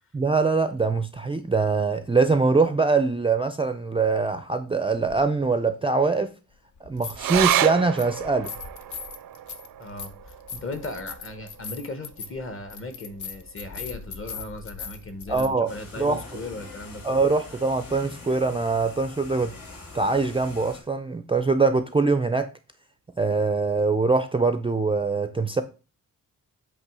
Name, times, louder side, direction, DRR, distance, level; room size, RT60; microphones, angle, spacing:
voice 1, 0.1-6.3 6.8-8.5 15.3-15.7 16.0-16.2 17.0-19.5 19.9-22.5 23.2-25.6, right 4 dB, 15° right, 9 dB, 0.4 m, -23 dB
sound 1, 5.1-5.2 6.8-7.7 8.0-15.5, left 6 dB, 65° left, 0.9 m, -39 dB
sound 2, 7.2-13.9 14.3-14.4 14.7-15.3 15.9-16.0, right 12 dB, 90° right, 0.5 m, -31 dB
voice 2, 9.8-17.3, left 2 dB, 40° left, 9 dB, 1.1 m, -37 dB
sound 3, 15.7-20.8, left 3 dB, 85° left, 3.2 m, -43 dB
8.2 x 3.1 x 6.0 m, 0.33 s
wide cardioid pair, 180°, 33 cm